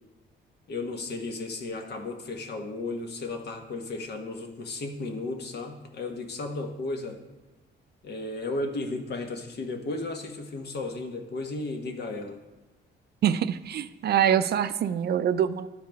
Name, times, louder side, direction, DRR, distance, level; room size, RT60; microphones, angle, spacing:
voice 1, 0.7-7.2 8.0-12.4, left 2 dB, 55° left, 4 dB, 1.2 m, -34 dB
voice 2, 13.2-15.7, right 9 dB, 55° right, 13 dB, 0.4 m, -24 dB
12.0 x 4.7 x 3.5 m, 1.1 s
cardioid pair, 90°, 20 cm